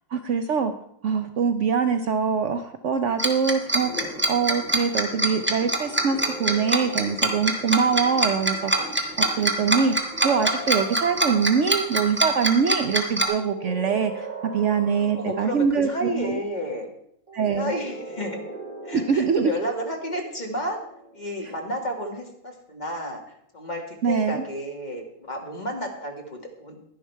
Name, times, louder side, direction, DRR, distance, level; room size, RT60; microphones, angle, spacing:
voice 1, 0.1-0.7 1.0-9.9 10.2-16.4 17.3-17.7 18.9-19.5 24.0-24.4, right 6 dB, 90° right, 8 dB, 0.6 m, -24 dB
Tick-tock, 3.2-13.3, right 1 dB, 10° right, 0.9 m, -23 dB
sound 1, 3.8-11.6, left 2 dB, 70° left, 3.0 m, -43 dB
sound 2, 5.8-8.3 10.0-11.8 13.2-15.9 17.3-21.8, right 2 dB, 50° right, 2.8 m, -40 dB
voice 2, 15.1-16.9 17.5-18.4 18.8-20.8 21.1-23.2 23.5-26.8, equal, 25° left, 2 dB, 1.7 m, -31 dB
11.0 x 11.0 x 4.5 m, 0.71 s
omnidirectional pair, 2.0 m